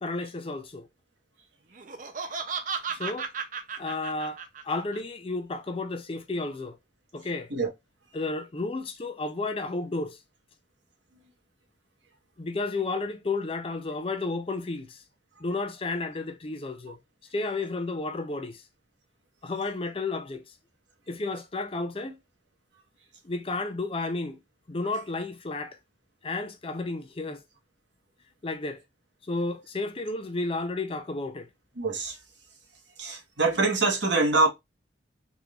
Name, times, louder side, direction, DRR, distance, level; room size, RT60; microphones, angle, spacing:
voice 1, 0.0-0.9 2.9-3.3 3.8-6.8 7.1-7.5 8.1-10.2 12.4-15.0 15.4-17.0 17.3-18.6 19.4-20.5 21.1-22.2 23.2-24.4 24.7-25.8 26.2-27.4 28.4-28.8 29.3-31.5, left 3 dB, 30° left, 0.5 m, -32 dB
Laughter, 1.7-5.0, right 5 dB, 45° right, 0.6 m, -34 dB
voice 2, 31.8-32.1 33.0-34.5, right 3 dB, 70° right, 1.2 m, -24 dB
3.6 x 3.3 x 2.3 m
head